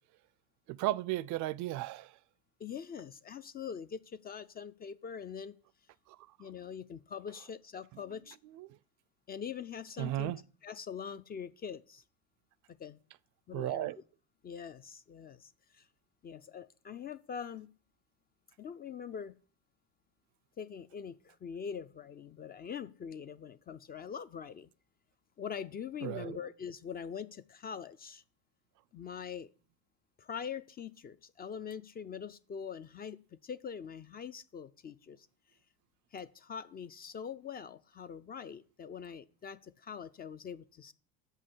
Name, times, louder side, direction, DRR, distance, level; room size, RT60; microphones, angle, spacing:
voice 1, 0.7-2.2 6.1-6.2 8.5-8.8 10.0-10.4 13.5-14.0 26.0-26.4, right 16 dB, 50° right, 0.4 m, -35 dB
voice 2, 2.6-5.6 6.4-8.4 9.3-10.3 10.6-12.0 12.7-13.0 13.5-13.9 14.4-15.9 16.2-17.7 18.6-19.3 20.6-24.7 25.4-28.2 28.9-29.5 30.2-35.3 36.1-40.9, left 7 dB, 25° left, 0.3 m, -43 dB
7.2 x 5.5 x 6.8 m
supercardioid pair, 95°, 39 cm